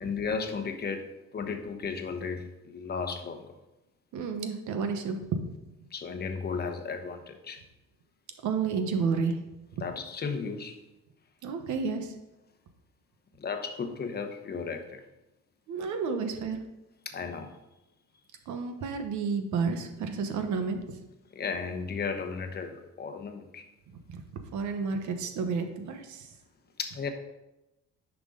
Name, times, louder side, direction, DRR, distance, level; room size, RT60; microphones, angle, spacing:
voice 1, 0.0-3.5 5.9-7.6 9.8-10.7 13.4-15.0 16.0-16.2 17.1-17.5 21.3-23.6 26.8-27.1, left 5 dB, 30° left, 7 dB, 0.9 m, -35 dB
voice 2, 4.1-5.4 8.4-9.3 9.8-9.9 11.4-12.1 15.7-16.6 18.5-20.9 24.1-24.2 24.5-26.3, right 5 dB, 70° right, 6 dB, 1.3 m, -31 dB
10.0 x 6.1 x 3.9 m, 0.97 s
cardioid pair, 155°, 31 cm